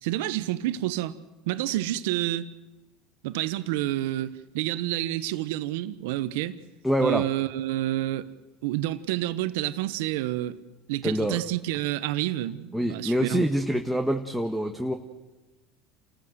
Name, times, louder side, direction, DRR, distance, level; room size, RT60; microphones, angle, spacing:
voice 1, 0.0-1.1 1.5-2.4 3.2-6.6 7.0-8.3 8.6-10.6 10.9-13.5, right 15 dB, 80° right, 1.1 m, -29 dB
voice 2, 6.8-7.3 11.0-11.4 12.7-14.9, equal, ahead, 1.5 m, -25 dB
28.5 x 14.5 x 7.9 m
supercardioid pair, 90°, 0 cm